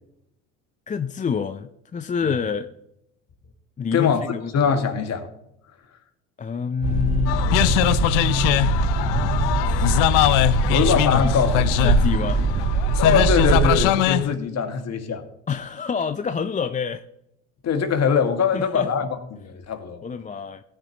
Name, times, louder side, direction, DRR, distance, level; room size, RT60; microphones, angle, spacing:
voice 1, 0.9-2.7 3.8-4.5 6.4-7.4 9.8-9.9 11.2-11.3 11.8-12.4 15.5-17.0 18.5-18.9 20.0-20.6, left 6 dB, 20° left, 10 dB, 0.5 m, -27 dB
voice 2, 3.9-4.2 4.5-5.3 10.7-11.6 13.0-15.2 17.6-20.0, left 6 dB, 45° left, 6 dB, 1.9 m, -22 dB
sound 1, 6.8-13.8, right 3 dB, 70° right, 3.0 m, -22 dB
sound 2, 7.3-14.3, left 15 dB, 75° left, 0.7 m, -22 dB
17.0 x 10.0 x 3.0 m, 0.81 s
hypercardioid pair, 65°, 36 cm